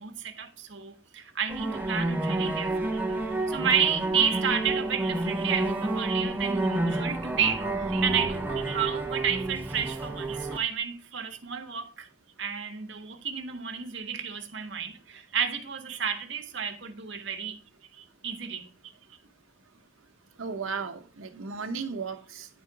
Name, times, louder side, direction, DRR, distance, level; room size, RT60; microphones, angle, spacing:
voice 1, 0.0-12.1 12.4-17.6 18.2-18.7, right 7 dB, 65° right, 1.1 m, -31 dB
sound 1, 1.5-10.6, right 2 dB, 10° right, 0.8 m, -29 dB
voice 2, 4.2-4.8 6.7-6.8 7.9-8.1 8.6-8.8 9.3-9.4 9.8-9.9 10.3-10.4 11.1-11.4 15.9-16.0 16.6-16.7 18.0-18.1 20.4-22.5, right 5 dB, 90° right, 0.9 m, -37 dB
9.6 x 3.9 x 4.6 m
head